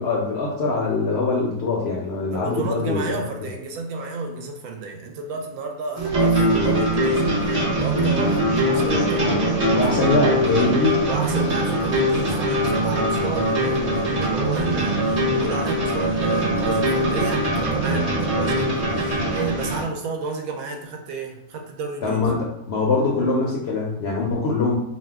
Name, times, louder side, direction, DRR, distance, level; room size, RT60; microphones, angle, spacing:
voice 1, 0.0-3.0 9.7-11.0 22.0-24.8, left 3 dB, 65° left, -3 dB, 0.6 m, -23 dB
voice 2, 2.3-10.1 10.4-22.3, right 4 dB, 75° right, 3 dB, 1.0 m, -32 dB
sound 1, 6.0-19.8, right 1 dB, 35° right, 0.6 m, -22 dB
2.6 x 2.1 x 3.4 m, 0.83 s
omnidirectional pair, 1.6 m